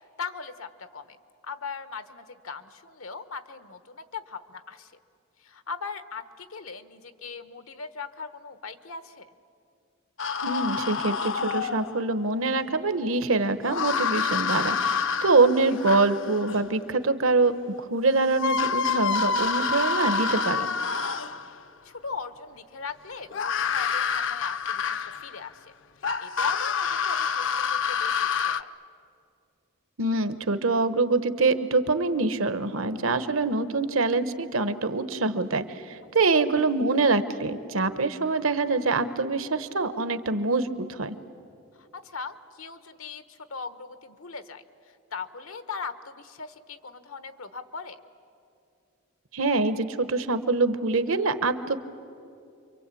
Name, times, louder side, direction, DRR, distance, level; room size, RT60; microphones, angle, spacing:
voice 1, 0.2-1.2 1.4-4.9 5.4-9.3 15.6-15.8 21.8-25.7 26.2-28.7 41.8-44.6 45.1-48.0, left 5 dB, 85° left, 11 dB, 1.2 m, -39 dB
sound 1, 10.2-12.1 13.6-16.6 17.9-18.0 18.3-21.6 23.3-25.4 26.0-28.6, left 5 dB, 60° left, 0.6 m, -27 dB
voice 2, 10.4-17.5 17.9-20.7 30.0-41.1 49.3-51.8, right 3 dB, 80° right, 11 dB, 1.2 m, -25 dB
29.0 x 24.0 x 8.5 m, 2.5 s
head